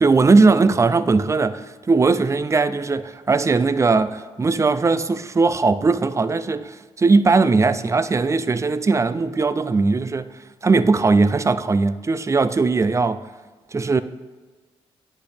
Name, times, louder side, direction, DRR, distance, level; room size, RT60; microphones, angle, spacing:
voice 1, 0.0-10.3 10.6-13.2 13.7-14.0, right 4 dB, 25° right, 0.4 m, -19 dB
9.6 x 5.1 x 3.4 m
cardioid pair, 60°, 11 cm